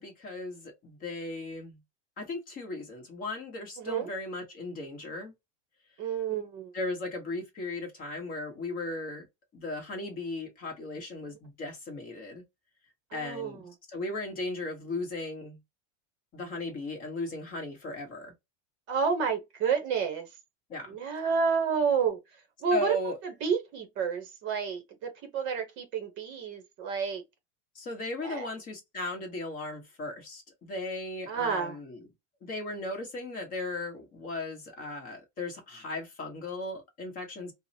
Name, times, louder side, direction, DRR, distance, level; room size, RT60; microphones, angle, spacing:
voice 1, 0.0-1.8 2.2-5.3 6.7-9.3 9.5-12.4 13.1-15.6 16.3-18.3 20.7-21.0 22.7-23.2 27.7-32.0 32.4-37.5, left 2 dB, 25° left, 1.0 m, -36 dB
voice 2, 3.8-4.1 6.0-6.7 13.1-13.7 18.9-20.3 20.9-22.2 22.6-23.0 23.2-27.2 28.2-28.5 31.3-31.8, right 6 dB, 30° right, 0.8 m, -30 dB
4.6 x 2.1 x 2.7 m
supercardioid pair, 170°, 37 cm